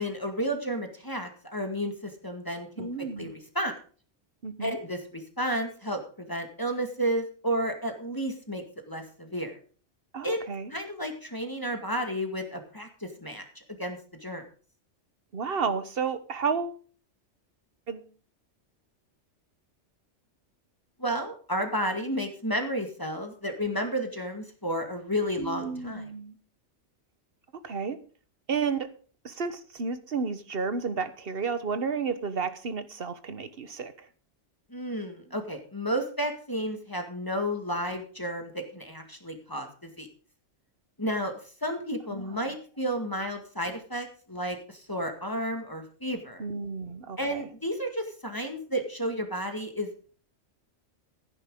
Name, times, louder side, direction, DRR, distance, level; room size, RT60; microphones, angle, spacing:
voice 1, 0.0-2.9 3.2-3.8 4.6-9.6 10.2-10.4 10.7-14.4 21.0-26.1 34.7-40.1 41.0-41.3 41.6-46.5 47.2-50.1, equal, 20° left, 4 dB, 1.9 m, -32 dB
voice 2, 2.8-3.3 4.4-4.8 10.1-10.7 15.3-16.8 17.9-18.1 25.4-26.3 27.6-28.0 28.5-28.9 29.2-33.9 42.1-42.5 46.4-47.4, right 5 dB, 55° right, 11 dB, 1.4 m, -32 dB
15.5 x 10.0 x 3.8 m, 0.39 s
omnidirectional pair, 1.2 m